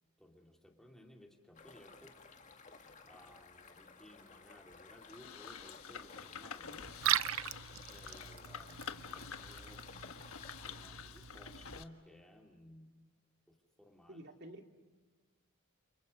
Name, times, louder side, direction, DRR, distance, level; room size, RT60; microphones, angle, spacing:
voice 1, 0.2-2.1 3.0-6.9 7.7-9.8 10.6-13.0 13.5-14.2, left 1 dB, ahead, 1 dB, 2.7 m, -59 dB
sound 1, 1.5-10.9, left 4 dB, 35° left, 2.0 m, -57 dB
sound 2, 5.0-11.8, left 7 dB, 85° left, 1.4 m, -48 dB
Liquid, 6.8-11.8, right 11 dB, 75° right, 0.7 m, -39 dB
voice 2, 14.1-14.7, right 1 dB, 55° right, 4 dB, 2.6 m, -50 dB
29.5 x 29.5 x 5.4 m, 1.4 s
head